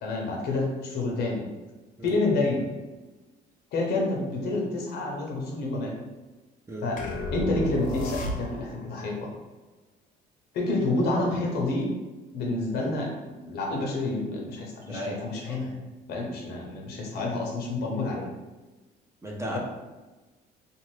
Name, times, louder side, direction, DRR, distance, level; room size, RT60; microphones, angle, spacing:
voice 1, 0.0-1.5 2.0-2.6 3.7-5.9 6.8-7.0 7.3-9.3 10.5-11.9 12.3-15.8 16.1-18.3, left 2 dB, 75° left, -1 dB, 0.9 m, -28 dB
sound 1, 7.0-8.8, left 2 dB, 55° left, 0.5 m, -32 dB
voice 2, 14.9-15.2 15.5-15.6 19.2-19.6, right 1 dB, 15° right, -3 dB, 0.7 m, -34 dB
2.6 x 2.5 x 3.2 m, 1.2 s
cardioid pair, 110°, 17 cm